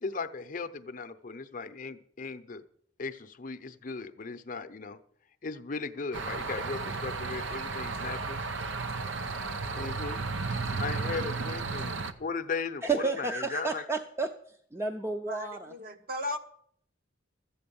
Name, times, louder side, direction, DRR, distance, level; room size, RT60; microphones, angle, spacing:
voice 1, 0.0-2.6 3.0-5.0 5.4-8.4 9.7-11.9 12.2-13.8, left 4 dB, 45° left, 10 dB, 0.7 m, -37 dB
sound 1, 6.1-12.1, right 4 dB, 85° right, 0.8 m, -34 dB
voice 2, 12.8-14.3 14.7-15.7, right 3 dB, 15° right, 5 dB, 0.6 m, -31 dB
voice 3, 15.3-16.4, left 1 dB, 50° right, 6 dB, 1.1 m, -36 dB
13.0 x 8.6 x 7.0 m, 0.64 s
head